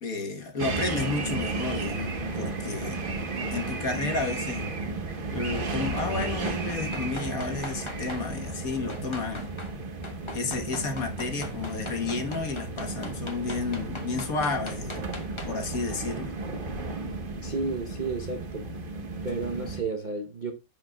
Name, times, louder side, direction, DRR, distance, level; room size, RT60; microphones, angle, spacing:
voice 1, 0.0-3.0 3.5-4.7 5.3-9.6 10.3-15.1 15.5-16.3, left 3 dB, 45° left, 1.6 m, -32 dB
sound 1, 0.6-19.8, right 3 dB, 35° right, 0.9 m, -34 dB
sound 2, 5.4-8.3 8.9-9.8 10.0-15.7 16.0-16.1, left 2 dB, 20° left, 0.9 m, -41 dB
voice 2, 17.4-18.7 19.2-20.5, right 3 dB, 70° right, 0.4 m, -32 dB
15.0 x 5.2 x 2.3 m
omnidirectional pair, 2.2 m